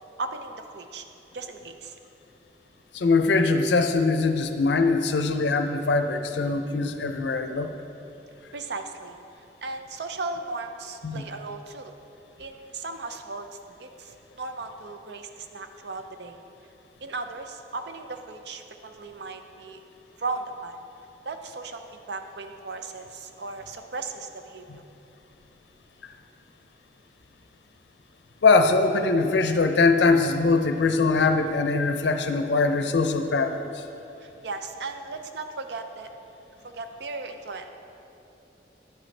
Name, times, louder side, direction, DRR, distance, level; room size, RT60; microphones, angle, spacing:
voice 1, 0.2-1.1 1.3-2.0 5.0-5.1 8.5-9.2 9.6-11.9 12.4-16.4 17.0-19.8 20.2-20.8 21.3-24.8 34.2-36.1 36.6-37.7, right 3 dB, 70° right, 7 dB, 0.6 m, -36 dB
voice 2, 2.9-7.7 11.0-11.2 24.7-24.8 28.4-33.8, left 3 dB, 75° left, 7 dB, 0.5 m, -22 dB
10.0 x 7.8 x 3.3 m, 2.9 s
head